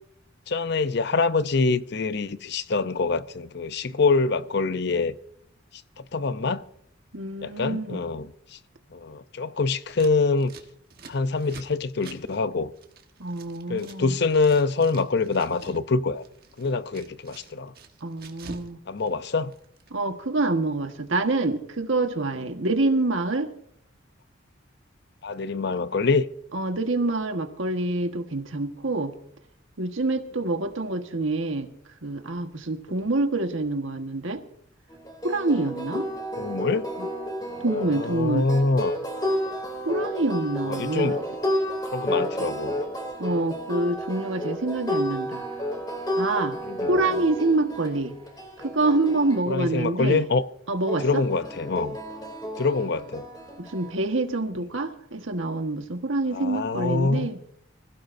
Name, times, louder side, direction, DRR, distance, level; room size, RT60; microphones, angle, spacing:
voice 1, 0.5-5.2 6.0-6.6 7.4-8.6 8.9-10.5 11.1-12.7 13.7-16.2 16.6-17.7 18.9-19.5 25.2-26.3 32.9-33.1 36.4-36.9 37.5-38.9 40.7-41.2 41.9-42.8 46.6-47.2 49.5-50.5 51.0-52.0 52.6-53.2 56.3-57.3, left 4 dB, 55° left, 0.7 m, -25 dB
voice 2, 7.1-8.0 13.2-14.2 18.0-18.8 19.9-23.5 26.5-29.1 29.8-31.7 32.0-34.4 35.2-36.1 37.6-38.5 39.8-41.2 43.2-45.4 46.2-46.6 46.9-48.1 48.6-50.2 50.7-51.2 53.6-57.4, right 2 dB, 80° right, 1.5 m, -26 dB
Scissors, 9.9-14.0 14.2-15.8 16.1-18.7 19.0-19.9, right 3 dB, 50° right, 1.4 m, -46 dB
sound 1, 34.9-49.4 50.9-53.9, equal, 20° left, 2.9 m, -31 dB
25.5 x 16.0 x 2.7 m
head